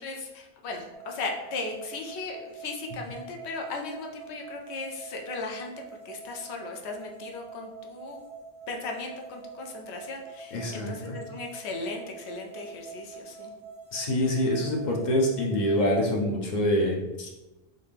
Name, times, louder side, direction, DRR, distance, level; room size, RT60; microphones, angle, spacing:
voice 1, 0.0-5.7 6.0-8.2 8.7-13.5, left 3 dB, 75° left, 2 dB, 0.9 m, -37 dB
sound 1, 0.9-16.1, right 3 dB, 30° right, 0.6 m, -45 dB
voice 2, 10.5-11.2 13.9-17.3, left 1 dB, 50° left, 0 dB, 0.7 m, -26 dB
3.6 x 2.7 x 3.4 m, 1.0 s
omnidirectional pair, 1.1 m